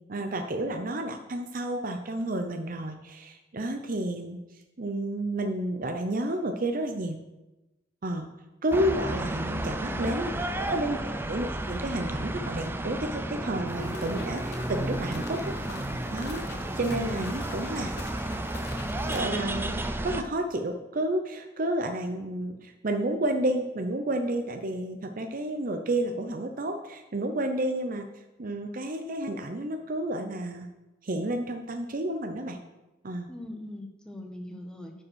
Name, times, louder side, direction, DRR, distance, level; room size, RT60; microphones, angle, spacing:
voice 1, 0.1-4.4 4.8-7.2 8.0-8.3 8.6-10.4 10.7-11.0 11.3-15.5 16.1-17.9 18.6-18.7 19.1-28.1 28.4-30.7 31.0-32.6 33.0-33.3, right 1 dB, 45° right, 5 dB, 0.7 m, -31 dB
sound 1, 8.7-20.2, right 1 dB, 10° right, 0.5 m, -32 dB
voice 2, 9.3-10.5 16.8-17.2 33.3-35.0, left 1 dB, 5° left, 2 dB, 1.1 m, -41 dB
sound 2, 13.7-19.2, left 3 dB, 60° left, 1.1 m, -45 dB
9.6 x 5.3 x 6.3 m, 1.0 s
head